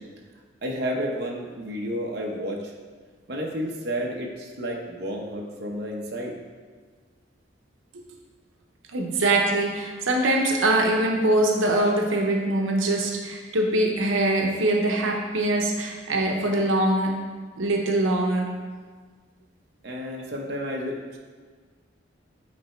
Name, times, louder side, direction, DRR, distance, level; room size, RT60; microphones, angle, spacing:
voice 1, 0.6-2.7 3.3-6.3 19.8-21.2, equal, 55° right, -1 dB, 0.8 m, -31 dB
voice 2, 8.9-17.2 17.6-18.5, right 1 dB, 90° right, 1 dB, 0.8 m, -23 dB
8.6 x 3.3 x 4.4 m, 1.5 s
head